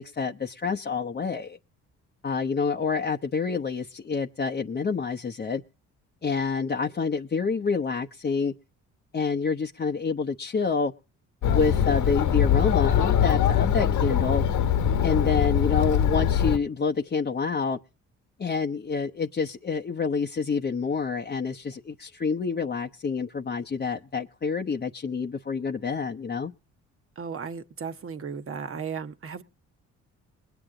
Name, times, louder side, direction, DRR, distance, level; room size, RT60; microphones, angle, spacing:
voice 1, 0.0-1.6 2.2-5.6 6.2-8.5 9.1-10.9 11.5-14.4 15.0-17.8 18.4-26.5, left 5 dB, 35° left, 1.0 m, -28 dB
Chatter, 11.4-16.6, left 9 dB, 80° left, 1.5 m, -22 dB
voice 2, 27.2-29.4, right 6 dB, 45° right, 1.4 m, -35 dB
21.0 x 9.0 x 3.8 m
cardioid pair, 90°, 30 cm